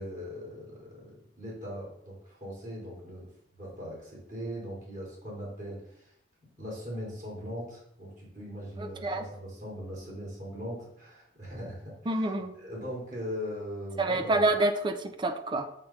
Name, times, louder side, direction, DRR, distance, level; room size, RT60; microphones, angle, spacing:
voice 1, 0.0-3.2 3.6-6.1 6.6-14.5, equal, 45° right, -5 dB, 2.8 m, -40 dB
voice 2, 8.8-9.2 12.1-12.5 14.0-15.7, right 2 dB, 25° right, 8 dB, 0.5 m, -28 dB
7.3 x 3.3 x 5.6 m, 0.71 s
head